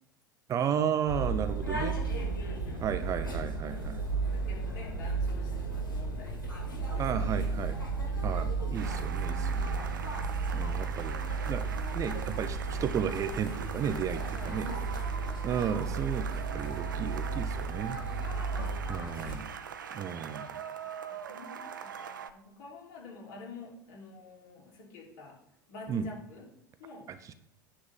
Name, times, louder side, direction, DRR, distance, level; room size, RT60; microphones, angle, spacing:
voice 1, 0.5-2.0 2.8-4.0 6.9-7.8 8.2-9.8 10.5-11.1 11.5-11.7 11.9-14.7 15.4-18.0 18.9-19.5 19.9-20.5 25.9-26.0 27.3-27.4, right 8 dB, 30° right, 10 dB, 0.6 m, -33 dB
sound 1, 1.1-19.4, right 4 dB, 80° left, 2.3 m, -33 dB
voice 2, 2.1-3.1 4.1-7.3 8.0-8.3 14.3-15.7 18.1-19.3 21.1-25.4 25.7-26.5 26.8-27.1, left 4 dB, 55° left, -2 dB, 3.3 m, -50 dB
sound 2, 8.7-22.3, right 8 dB, 70° right, 0.6 m, -42 dB
9.5 x 3.7 x 7.1 m, 0.81 s
figure-of-eight pair, 80°, 11 cm